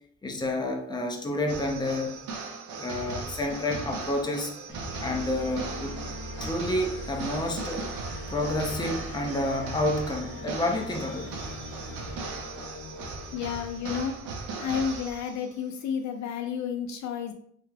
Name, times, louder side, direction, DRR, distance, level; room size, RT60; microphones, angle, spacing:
voice 1, 0.2-2.2 2.7-4.5 5.0-6.0 6.4-7.9 8.3-11.4, left 1 dB, 15° left, 2 dB, 0.6 m, -29 dB
sound 1, 1.5-15.5, right 4 dB, 85° right, 0.6 m, -38 dB
sound 2, 4.7-14.1, left 1 dB, 45° left, 1.0 m, -41 dB
sound 3, 4.9-12.5, left 2 dB, 20° right, 0.7 m, -50 dB
voice 2, 13.3-14.2 14.6-17.3, left 7 dB, 70° left, 5 dB, 0.4 m, -31 dB
3.2 x 2.8 x 2.3 m, 0.67 s
cardioid pair, 90°, 30 cm